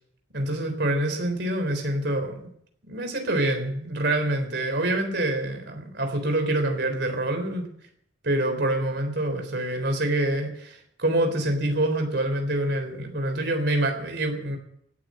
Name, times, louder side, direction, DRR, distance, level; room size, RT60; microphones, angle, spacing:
voice 1, 0.3-2.5 2.8-7.7 8.2-14.6, right 1 dB, 60° right, 5 dB, 3.8 m, -26 dB
16.5 x 8.3 x 9.5 m, 0.70 s
head